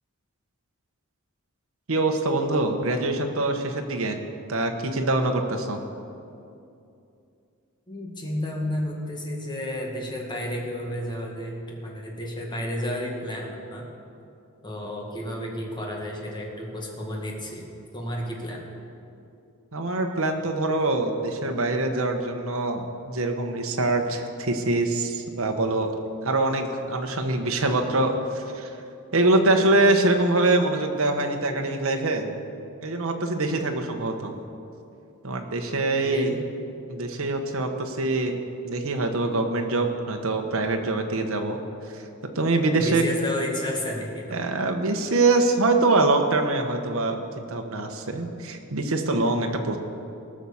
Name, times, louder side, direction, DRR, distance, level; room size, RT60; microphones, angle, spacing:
voice 1, 1.9-4.2 4.5-5.8 19.7-25.9 26.2-28.8 29.1-32.3 32.8-34.3 35.2-36.3 36.9-38.4 38.6-43.0 44.3-49.8, right 2 dB, 65° right, 4 dB, 1.2 m, -24 dB
voice 2, 7.9-13.9 14.6-17.7 17.9-18.6 36.0-36.4 42.8-44.4, equal, 20° left, -1 dB, 2.0 m, -32 dB
18.5 x 6.3 x 7.1 m, 2.6 s
head